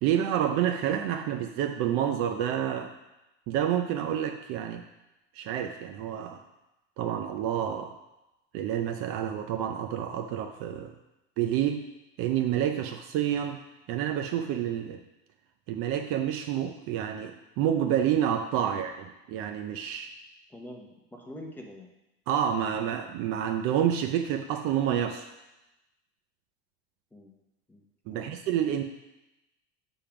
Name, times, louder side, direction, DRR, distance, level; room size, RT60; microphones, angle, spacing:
voice 1, 0.0-2.9 3.5-4.8 5.4-6.4 7.0-7.9 8.5-10.9 11.4-11.8 12.2-13.6 13.9-15.0 15.7-20.1 22.3-25.3 28.1-28.8, right 10 dB, 45° right, 6 dB, 0.5 m, -28 dB
voice 2, 20.5-21.9 27.1-27.3 27.7-27.8 28.1-28.4, left 1 dB, 5° left, 0 dB, 0.7 m, -45 dB
6.8 x 3.6 x 5.7 m, 0.96 s
supercardioid pair, 150°, 33 cm